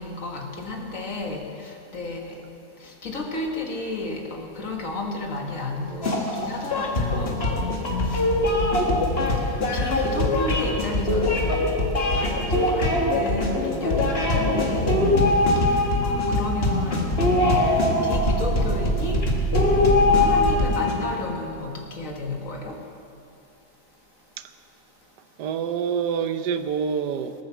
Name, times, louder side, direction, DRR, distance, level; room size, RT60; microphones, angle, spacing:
voice 1, 0.0-2.4 2.8-7.4 8.0-9.2 9.5-14.9 15.6-17.1 17.7-17.8 18.0-19.2 19.8-22.8, left 2 dB, 55° left, 1 dB, 2.0 m, -33 dB
sound 1, 6.0-20.9, left 2 dB, 40° left, 2.0 m, -22 dB
sound 2, 18.2-21.0, right 5 dB, 40° right, 0.8 m, -27 dB
voice 2, 25.4-27.3, right 7 dB, 85° right, 10 dB, 1.3 m, -27 dB
19.0 x 9.1 x 7.2 m, 2.5 s
omnidirectional pair, 1.7 m